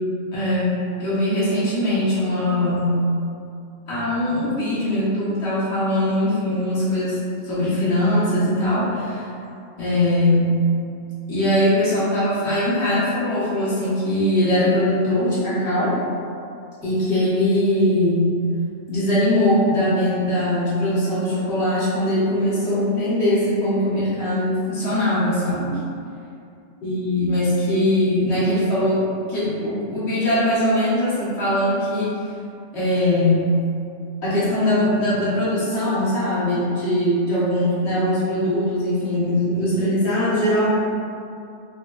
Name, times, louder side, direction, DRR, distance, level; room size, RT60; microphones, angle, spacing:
voice 1, 0.3-3.0 3.9-9.3 9.8-10.6 11.3-16.0 16.8-18.4 18.9-25.8 26.8-32.2 32.7-33.5 34.2-40.7, left 1 dB, 60° left, -10 dB, 1.5 m, -21 dB
4.2 x 3.1 x 2.4 m, 2.5 s
omnidirectional pair, 1.3 m